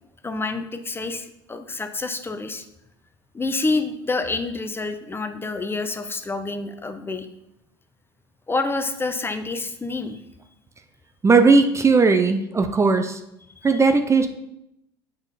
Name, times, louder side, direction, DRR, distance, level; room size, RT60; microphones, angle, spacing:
voice 1, 0.2-2.6 3.3-7.3 8.5-10.2, left 3 dB, 15° left, 8 dB, 0.8 m, -28 dB
voice 2, 11.2-13.2 13.6-14.3, right 4 dB, 20° right, 7 dB, 0.6 m, -17 dB
8.0 x 5.3 x 4.1 m, 0.83 s
hypercardioid pair, 75°, 14 cm